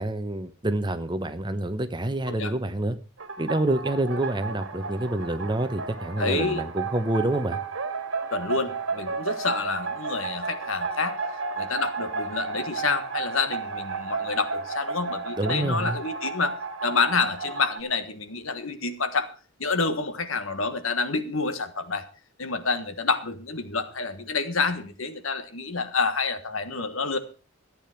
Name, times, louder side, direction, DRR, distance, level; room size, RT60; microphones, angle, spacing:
voice 1, 0.0-3.0 3.4-7.6 15.4-16.0, right 1 dB, 20° right, 10 dB, 0.9 m, -27 dB
sound 1, 3.2-17.8, right 4 dB, 80° right, 1.7 m, -33 dB
voice 2, 6.2-6.6 8.3-11.2 11.6-16.6 16.8-19.3 19.6-22.0 22.4-27.2, left 4 dB, 80° left, 10 dB, 1.6 m, -28 dB
14.0 x 8.8 x 5.8 m, 0.35 s
head